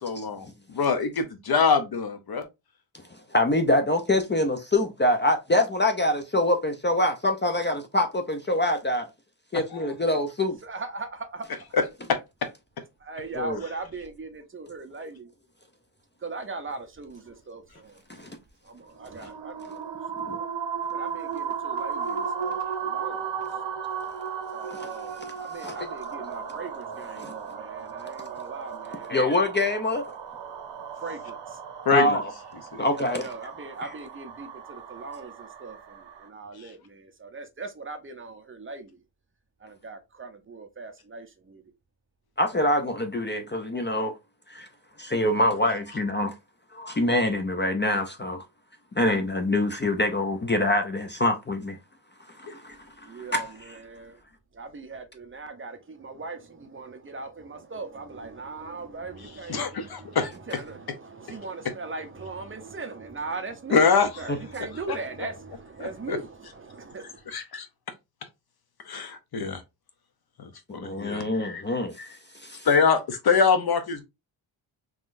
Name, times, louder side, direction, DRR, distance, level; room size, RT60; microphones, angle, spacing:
voice 1, 0.0-2.5 9.5-9.9 11.7-11.8 12.1-12.5 31.9-32.2 32.7-32.9 36.6-36.7 52.5-52.6 59.5-60.3 63.7-64.1 64.9-65.0 65.8-66.2 67.3-67.7 68.9-69.6 70.4-71.6 72.0-72.1 72.6-74.0, left 5 dB, 55° left, 0.7 m, -24 dB
voice 2, 3.1-9.1 9.5-10.6 13.3-13.6 18.1-18.3 19.2-19.3 20.3-20.4 24.7-24.9 25.2-25.3 25.6-25.8 27.2-27.3 29.1-30.0 31.9-32.3 32.8-33.3 42.4-44.1 44.5-44.7 45.0-46.3 46.7-48.4 49.0-51.8 52.3-52.8 53.1-53.8 64.3-64.4 70.7-72.0 72.3-72.7, left 1 dB, 25° left, 0.4 m, -25 dB
voice 3, 10.6-11.5 13.0-15.3 16.2-18.0 18.6-20.5 20.9-23.2 24.5-29.4 31.0-31.6 32.9-39.0 39.6-41.6 53.1-54.2 54.5-67.3, right 3 dB, 25° right, 0.6 m, -39 dB
sound 1, 19.0-36.3, right 7 dB, 65° right, 0.8 m, -35 dB
3.7 x 3.1 x 2.5 m
wide cardioid pair, 145°, 46 cm